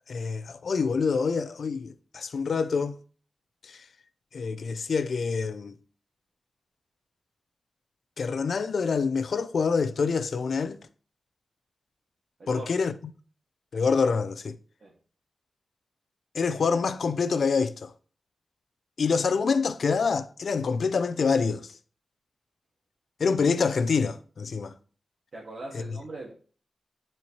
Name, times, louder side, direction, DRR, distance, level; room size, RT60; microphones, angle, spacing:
voice 1, 0.1-3.0 3.7-3.8 4.3-5.7 8.2-10.8 12.5-12.9 13.7-14.6 16.3-17.9 19.0-21.7 23.2-24.7 25.7-25.8, left 5 dB, 70° left, 0.6 m, -26 dB
voice 2, 25.3-26.3, right 2 dB, 55° right, 1.7 m, -40 dB
9.7 x 4.5 x 3.2 m
wide cardioid pair, 155°, 0 cm